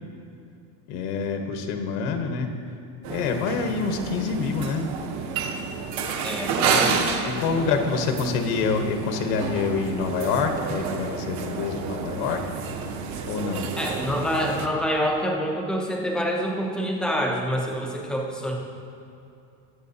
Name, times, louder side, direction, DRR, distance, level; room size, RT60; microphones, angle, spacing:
voice 1, 0.9-2.5 3.1-4.9 7.2-12.4 13.3-13.7, left 5 dB, 65° left, 5 dB, 1.2 m, -26 dB
sound 1, 3.0-14.7, right 5 dB, 35° right, 0.8 m, -30 dB
voice 2, 6.2-7.0 7.6-7.8 13.8-18.6, equal, ahead, -1 dB, 0.5 m, -27 dB
21.5 x 7.4 x 2.7 m, 2.6 s
cardioid pair, 170°, 47 cm